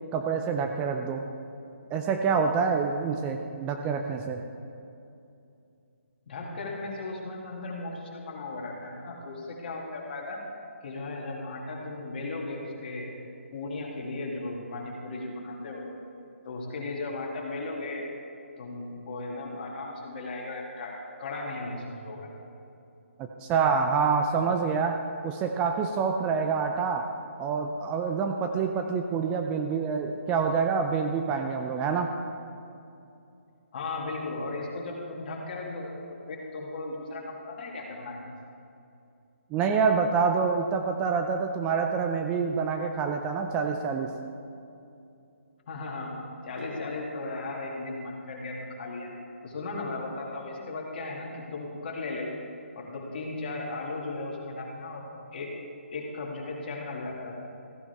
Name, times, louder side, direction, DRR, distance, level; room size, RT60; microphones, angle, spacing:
voice 1, 0.1-1.2 1.9-4.4 23.2-27.1 27.4-32.1 39.5-44.1, right 5 dB, 15° right, 4 dB, 0.4 m, -27 dB
voice 2, 6.3-10.4 10.8-13.1 13.5-15.9 16.4-18.0 18.6-20.9 21.2-22.3 33.7-36.0 36.3-38.4 45.7-46.2 46.4-49.1 49.4-52.3 52.8-55.0 55.3-55.5 55.9-57.4, left 2 dB, 45° left, -2 dB, 2.4 m, -36 dB
14.5 x 9.7 x 3.4 m, 2.6 s
hypercardioid pair, 150°, 7 cm